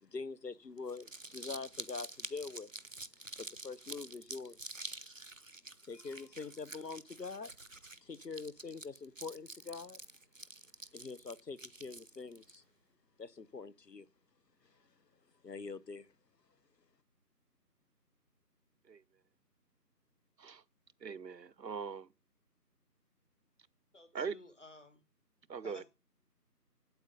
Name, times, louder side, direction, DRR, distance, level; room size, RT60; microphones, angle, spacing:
voice 1, 0.0-2.7 3.4-4.9 5.8-7.5 8.0-10.0 10.9-12.6 13.2-14.1 15.4-16.1, left 4 dB, 75° left, 1.0 m, -44 dB
Crumpling crinkling, 0.8-12.6, right 2 dB, 50° right, 0.6 m, -48 dB
voice 2, 21.0-22.1 24.1-24.3 25.5-25.8, right 6 dB, 80° right, 0.8 m, -41 dB
voice 3, 23.9-25.0 25.6-25.8, left 2 dB, 45° left, 1.9 m, -54 dB
8.5 x 8.1 x 5.3 m
figure-of-eight pair, 175°, 49 cm